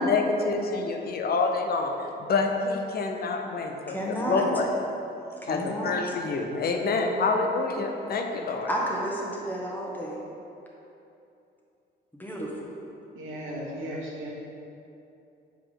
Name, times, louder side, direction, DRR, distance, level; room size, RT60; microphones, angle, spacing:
voice 1, 0.0-1.9 2.2-4.0 4.3-4.7 5.5-8.7, left 3 dB, 50° left, 3 dB, 0.7 m, -27 dB
voice 2, 3.9-4.4 5.4-6.0 8.7-10.2 12.2-12.5, equal, 10° left, -4 dB, 1.3 m, -31 dB
voice 3, 13.1-14.3, equal, 85° right, -4 dB, 1.5 m, -36 dB
6.9 x 4.6 x 3.8 m, 2.8 s
cardioid pair, 90°, 20 cm